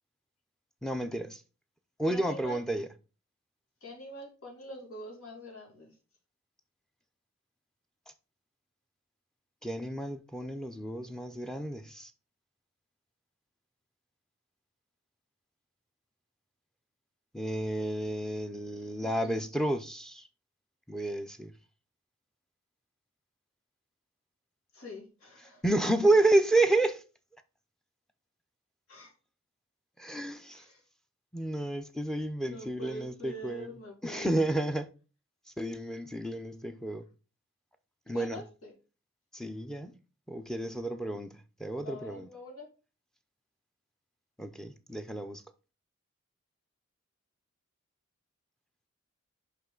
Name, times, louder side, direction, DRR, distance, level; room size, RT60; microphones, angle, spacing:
voice 1, 0.8-1.4 2.0-2.9 9.6-12.1 17.3-20.3 20.9-21.5 25.6-27.0 30.0-30.6 31.3-33.7 34.0-34.9 35.6-37.0 38.1-38.4 39.3-39.9 40.3-41.3 41.6-42.3 44.4-45.4, right 2 dB, 5° left, 0.5 m, -30 dB
voice 2, 2.1-2.6 3.8-5.9 18.7-19.4 24.7-25.6 28.9-29.1 30.5-30.8 32.4-34.3 38.0-38.7 41.8-42.7, left 1 dB, 90° left, 2.7 m, -45 dB
5.6 x 5.6 x 3.8 m
head